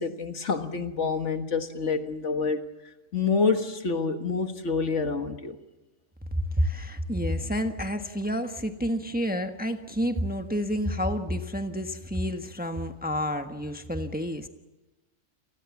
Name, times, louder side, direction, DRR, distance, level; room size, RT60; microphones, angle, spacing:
voice 1, 0.0-2.7 3.1-5.6, left 4 dB, 60° left, 1.8 m, -27 dB
voice 2, 6.3-14.5, equal, 5° right, 1.2 m, -29 dB
29.0 x 19.5 x 7.2 m
omnidirectional pair, 1.4 m